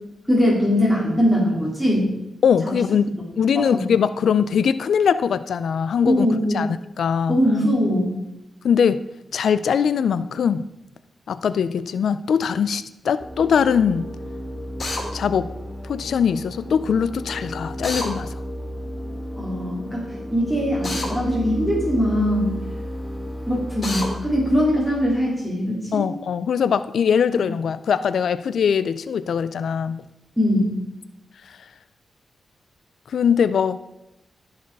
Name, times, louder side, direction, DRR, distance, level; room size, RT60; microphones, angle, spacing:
voice 1, 0.3-2.1 3.5-3.8 6.0-6.5 7.3-8.1 19.4-22.6 23.5-26.0 27.3-27.4 30.4-30.8, equal, 5° right, -4 dB, 3.2 m, -21 dB
voice 2, 2.4-3.1 3.4-6.3 6.5-7.4 8.6-9.0 9.3-10.7 11.3-14.1 15.1-15.5 15.8-18.4 25.9-30.0 31.5-31.6 33.1-33.8, left 7 dB, 80° left, 14 dB, 0.4 m, -21 dB
sound 1, 13.2-25.2, equal, 10° left, 1.5 m, -33 dB
Drill, 14.8-15.0 17.8-18.1 20.8-21.1 23.8-24.1, left 2 dB, 40° left, 2.4 m, -27 dB
14.5 x 4.9 x 4.7 m, 0.93 s
cardioid pair, 85°, 0 cm